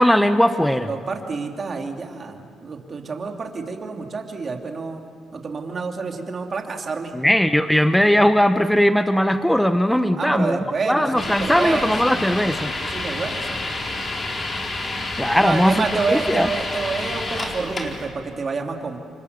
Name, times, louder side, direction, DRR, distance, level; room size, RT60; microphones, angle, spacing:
voice 1, 0.0-0.9 7.1-10.6 10.9-12.7 15.2-16.5, equal, 5° left, 9 dB, 0.9 m, -19 dB
voice 2, 0.9-5.0 5.3-7.1 10.2-11.9 12.8-13.6 15.4-19.0, right 4 dB, 40° right, 3 dB, 2.9 m, -28 dB
sound 1, 11.2-18.1, left 2 dB, 35° left, 4.3 m, -29 dB
29.0 x 24.5 x 6.9 m, 2.3 s
cardioid pair, 90°, 0 cm